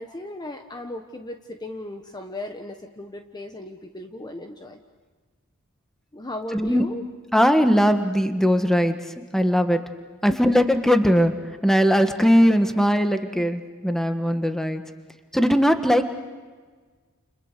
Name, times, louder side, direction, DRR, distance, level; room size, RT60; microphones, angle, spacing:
voice 1, 0.0-4.8 6.1-7.0 10.3-10.4, left 1 dB, 20° left, 5 dB, 1.1 m, -36 dB
voice 2, 6.5-6.8 7.3-9.0 9.3-9.8 10.2-11.3 11.6-14.8 15.3-16.1, equal, ahead, 7 dB, 1.5 m, -19 dB
30.0 x 29.5 x 6.7 m, 1.4 s
head